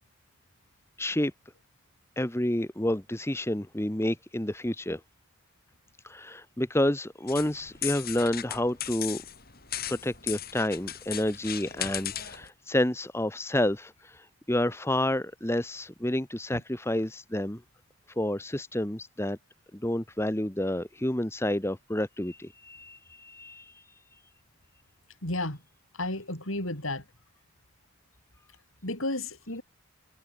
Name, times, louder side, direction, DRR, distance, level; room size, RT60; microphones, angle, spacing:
voice 1, 1.0-1.3 2.2-5.0 6.0-9.2 9.9-17.6 18.2-19.4 19.7-23.8, left 1 dB, 10° left, 1.1 m, -29 dB
sound 1, 7.3-12.5, left 11 dB, 45° left, 5.3 m, -37 dB
voice 2, 25.2-25.6 25.9-27.0 28.8-29.6, left 2 dB, 70° left, 6.8 m, -32 dB
head